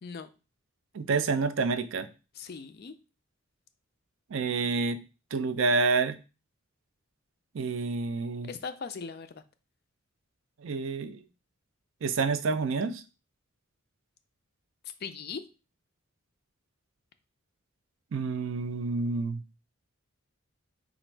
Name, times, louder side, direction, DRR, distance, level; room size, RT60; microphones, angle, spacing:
voice 1, 0.9-2.1 4.3-5.0 5.3-6.2 7.5-8.5 10.6-11.2 12.0-13.0 18.1-19.4, right 4 dB, 65° right, 0.4 m, -28 dB
voice 2, 2.4-2.9 8.4-9.4 15.0-15.4, left 5 dB, 45° left, 0.4 m, -39 dB
3.9 x 2.5 x 4.5 m
head